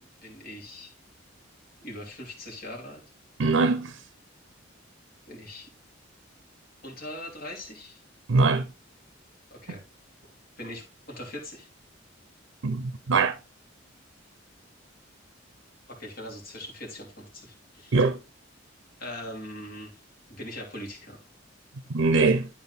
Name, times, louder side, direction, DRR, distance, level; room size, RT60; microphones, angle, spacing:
voice 1, 0.2-0.9 1.8-3.0 5.3-5.7 6.8-8.0 9.5-9.8 10.6-11.7 15.9-18.1 19.0-19.9 20.3-21.2, left 1 dB, 50° left, 2.9 m, -41 dB
voice 2, 3.4-3.9 8.3-8.7 12.6-13.4 17.9-18.2 21.9-22.5, right 3 dB, 85° right, 0.6 m, -22 dB
11.5 x 4.3 x 4.0 m
head